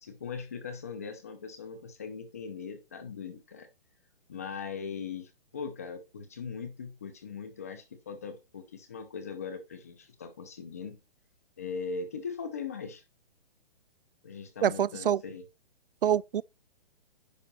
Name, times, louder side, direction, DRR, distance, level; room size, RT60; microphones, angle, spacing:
voice 1, 0.0-3.7 4.3-11.0 11.6-13.0 14.2-15.4, left 5 dB, 15° left, 0.7 m, -40 dB
voice 2, 14.6-15.2 16.0-16.4, right 9 dB, 65° right, 0.5 m, -26 dB
10.5 x 4.9 x 4.2 m
hypercardioid pair, 180°, 30 cm